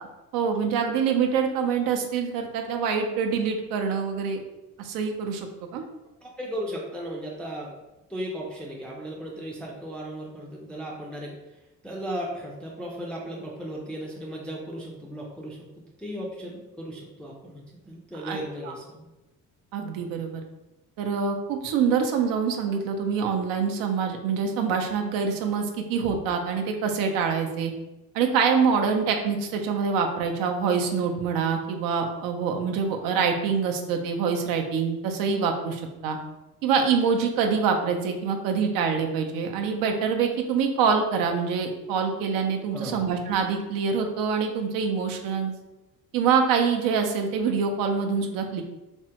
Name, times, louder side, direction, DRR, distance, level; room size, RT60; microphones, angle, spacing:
voice 1, 0.3-4.4 4.8-5.8 18.2-18.4 18.6-18.7 19.7-20.4 21.0-27.7 28.1-36.2 36.6-45.5 46.1-48.6, right 6 dB, 90° right, 4 dB, 0.5 m, -25 dB
voice 2, 6.2-7.7 8.1-11.3 11.8-19.1 42.7-43.0, equal, 5° left, -3 dB, 0.3 m, -36 dB
3.4 x 2.1 x 2.8 m, 1.0 s
cardioid pair, 125°, 33 cm